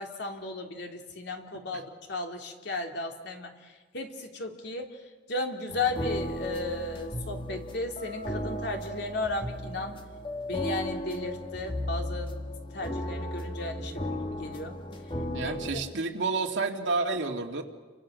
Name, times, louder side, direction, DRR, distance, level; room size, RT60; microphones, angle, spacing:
voice 1, 0.0-5.0 5.3-10.0 10.5-12.3 12.7-14.8 15.4-15.8, left 2 dB, 65° left, 3 dB, 2.9 m, -35 dB
sound 1, 5.7-15.7, equal, 30° left, 1.9 m, -35 dB
voice 2, 15.3-17.6, right 3 dB, 75° right, 2 dB, 2.4 m, -30 dB
30.0 x 24.5 x 6.4 m, 1.4 s
head